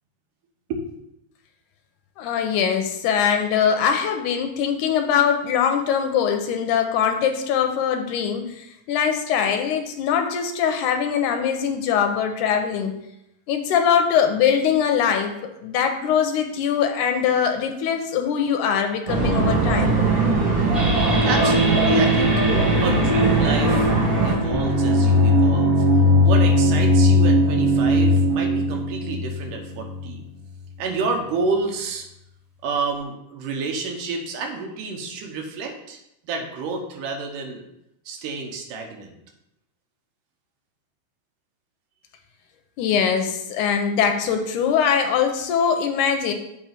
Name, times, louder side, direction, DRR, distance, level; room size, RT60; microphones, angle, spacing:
voice 1, 2.2-13.0 13.5-15.3 15.6-20.0 42.8-46.3, left 7 dB, 80° left, 5 dB, 2.0 m, -22 dB
sound 1, 19.1-24.3, right 3 dB, 45° right, 1.7 m, -20 dB
sound 2, 20.7-30.1, left 1 dB, ahead, 0.7 m, -19 dB
voice 2, 21.2-22.3 22.8-23.9 24.2-25.9 26.2-30.2 30.8-32.1 32.6-36.0 36.2-37.6 38.1-39.1, right 4 dB, 80° right, 2 dB, 2.5 m, -29 dB
7.4 x 3.1 x 5.8 m, 0.83 s
omnidirectional pair, 3.7 m